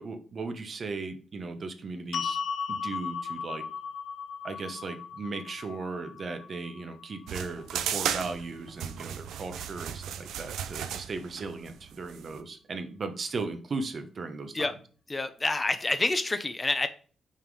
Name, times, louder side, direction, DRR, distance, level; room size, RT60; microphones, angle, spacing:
voice 1, 0.0-2.4 2.7-3.6 4.4-14.7, right 3 dB, 55° right, 0.9 m, -37 dB
sound 1, 2.1-8.3, left 6 dB, 70° left, 0.4 m, -37 dB
sound 2, 7.3-12.4, right 9 dB, 85° right, 0.4 m, -35 dB
voice 2, 15.1-16.9, left 2 dB, 30° left, 0.7 m, -28 dB
5.6 x 3.7 x 4.8 m
supercardioid pair, 55°, 0 cm